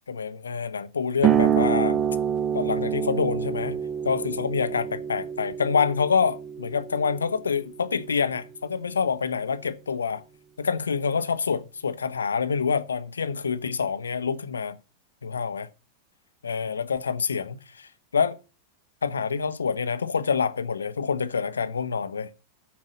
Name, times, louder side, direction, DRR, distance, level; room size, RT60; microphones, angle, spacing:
voice 1, 0.1-2.0 2.5-3.8 4.0-10.2 10.6-14.8 15.2-15.7 16.4-18.4 19.0-22.3, left 6 dB, 70° left, 0.9 m, -27 dB
sound 1, 1.2-8.4, right 8 dB, 25° right, 0.5 m, -27 dB
9.3 x 4.7 x 7.4 m
figure-of-eight pair, 90°, 0 cm